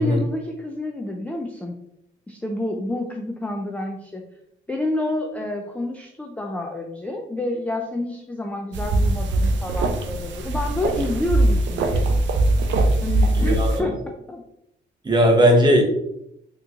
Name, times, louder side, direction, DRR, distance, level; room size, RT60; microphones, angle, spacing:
voice 1, 0.0-1.8 2.3-4.2 4.7-12.1 13.0-14.0 14.3-14.4, left 1 dB, 5° left, 2 dB, 0.3 m, -29 dB
sound 1, 8.7-13.8, right 2 dB, 70° right, 0.5 m, -21 dB
voice 2, 13.4-13.9 15.0-15.8, equal, 20° right, 1 dB, 0.9 m, -17 dB
3.5 x 2.9 x 2.5 m, 0.79 s
cardioid pair, 90°, 20 cm